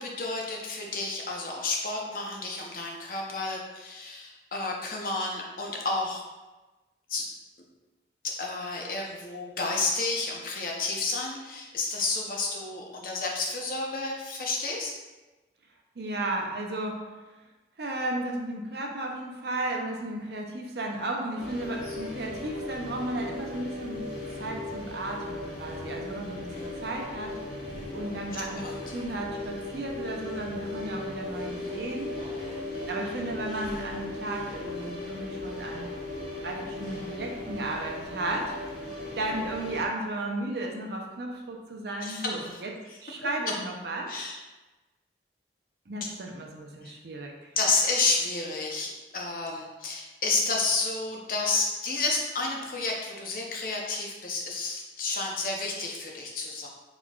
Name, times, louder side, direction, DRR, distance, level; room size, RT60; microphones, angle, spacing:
voice 1, 0.0-6.2 7.1-7.3 8.2-14.9 28.5-28.7 42.0-42.6 44.1-44.4 46.8-46.9 47.6-56.7, left 3 dB, 50° left, -1 dB, 0.7 m, -30 dB
voice 2, 16.0-17.0 17.8-24.1 24.4-32.1 32.9-35.9 36.4-38.6 39.2-42.7 43.0-44.2 45.9-47.5, right 2 dB, 70° right, 1 dB, 0.6 m, -34 dB
sound 1, 21.4-39.9, left 2 dB, 85° left, 1.3 m, -37 dB
4.5 x 4.1 x 2.3 m, 1.2 s
head